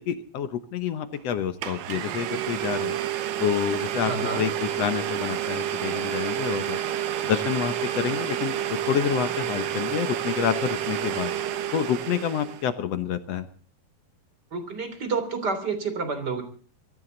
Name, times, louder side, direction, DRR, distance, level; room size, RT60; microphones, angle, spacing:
voice 1, 0.0-3.0 3.4-6.8 7.2-11.3 11.7-13.5, left 9 dB, 65° left, 10 dB, 1.8 m, -28 dB
Domestic sounds home sounds, 1.1-1.2 1.6-12.7, right 10 dB, 85° right, 2.9 m, -29 dB
voice 2, 4.0-4.4 14.5-16.4, right 4 dB, 30° right, 8 dB, 3.6 m, -29 dB
23.5 x 14.5 x 3.9 m, 0.42 s
omnidirectional pair, 3.9 m